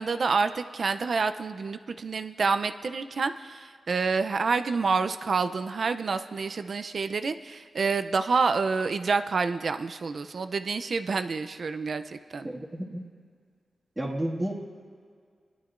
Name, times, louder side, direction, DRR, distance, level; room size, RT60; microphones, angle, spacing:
voice 1, 0.0-12.5, right 4 dB, 55° right, 10 dB, 0.5 m, -28 dB
voice 2, 12.4-13.0 14.0-14.5, right 1 dB, 10° right, -4 dB, 2.0 m, -31 dB
20.5 x 11.5 x 2.5 m, 2.1 s
wide cardioid pair, 115°, 0 cm